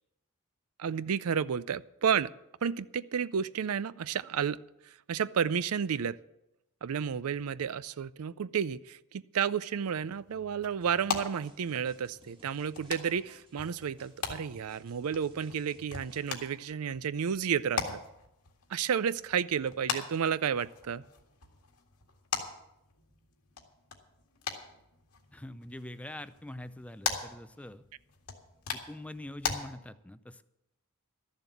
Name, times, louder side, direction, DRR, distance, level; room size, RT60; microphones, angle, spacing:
voice 1, 0.8-2.3 2.6-4.6 4.8-6.2 6.8-18.0 18.7-21.0, right 7 dB, 70° right, 17 dB, 0.4 m, -31 dB
sound 1, 9.7-29.6, left 6 dB, 90° left, 2.0 m, -41 dB
sound 2, 10.8-16.4, right 1 dB, 25° right, 1.9 m, -60 dB
voice 2, 25.3-27.8 28.7-30.4, left 1 dB, 5° left, 13 dB, 0.4 m, -44 dB
13.0 x 7.3 x 8.3 m, 0.86 s
head